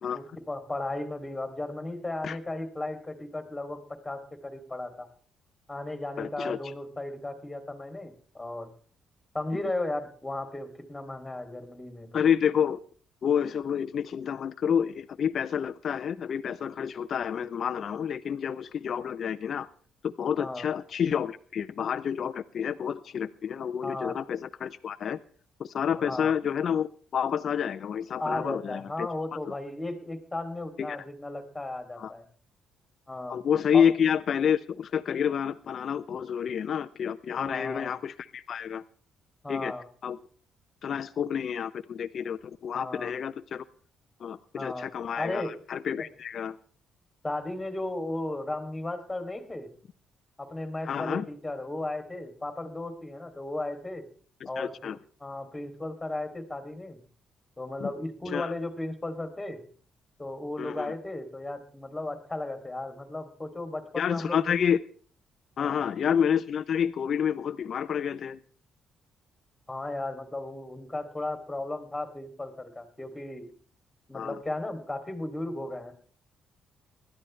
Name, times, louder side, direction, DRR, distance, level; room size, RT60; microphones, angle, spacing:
voice 1, 0.1-5.1 5.7-8.7 9.3-12.3 20.4-20.7 23.8-24.1 26.0-26.3 28.2-32.2 33.1-33.4 33.7-33.9 37.4-37.9 39.4-39.8 42.7-43.1 44.5-44.9 45.2-45.5 47.2-49.7 50.4-54.1 54.4-54.9 55.2-57.0 57.6-59.6 60.2-64.6 65.6-65.9 69.7-73.5 74.1-76.0, left 2 dB, 10° left, 7 dB, 2.7 m, -35 dB
voice 2, 6.2-6.6 12.1-12.8 13.2-19.7 20.0-25.2 25.6-29.1 29.5-29.6 30.8-31.0 32.0-32.1 33.3-38.8 39.5-39.7 40.0-40.2 40.8-43.6 44.2-46.6 50.8-51.2 54.4-55.0 57.8-57.9 58.3-58.5 60.6-60.9 64.0-64.8 65.6-68.4 74.1-74.4, left 8 dB, 55° left, 9 dB, 0.5 m, -29 dB
20.5 x 12.5 x 3.2 m, 0.43 s
cardioid pair, 90°, 0 cm